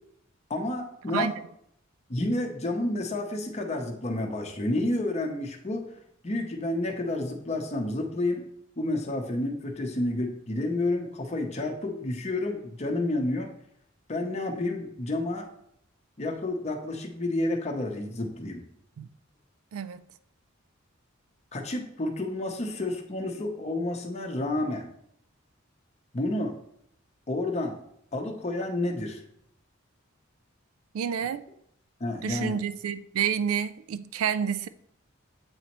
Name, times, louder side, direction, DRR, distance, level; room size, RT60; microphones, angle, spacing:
voice 1, 0.5-1.3 2.1-5.9 6.2-8.5 8.8-13.5 14.1-15.5 16.2-18.6 21.5-24.9 26.1-26.6 27.3-27.8 28.1-29.2 32.0-32.5, left 2 dB, 30° left, 0.7 m, -30 dB
voice 2, 19.7-20.0 30.9-31.4 32.2-34.7, right 8 dB, 85° right, 0.3 m, -29 dB
7.9 x 4.1 x 2.9 m
head